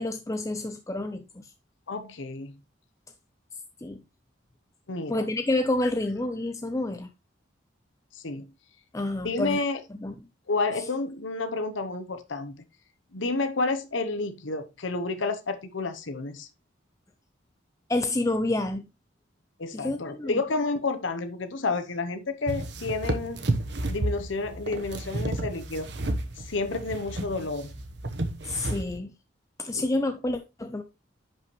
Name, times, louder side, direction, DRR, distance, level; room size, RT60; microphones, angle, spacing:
voice 1, 0.0-1.5 3.8-4.0 5.1-7.1 8.9-9.6 10.0-10.1 10.8-10.9 17.9-18.9 19.7-20.4 28.4-29.1 29.6-30.8, left 2 dB, 15° left, 0.5 m, -29 dB
voice 2, 1.9-2.5 4.9-5.2 8.1-8.5 9.2-9.8 10.5-12.6 13.1-16.5 19.6-23.4 23.9-25.9 26.5-27.7 29.7-29.9, left 3 dB, 80° left, 0.9 m, -30 dB
sound 1, 22.5-29.0, right 1 dB, 60° right, 1.1 m, -32 dB
10.5 x 5.5 x 3.1 m
head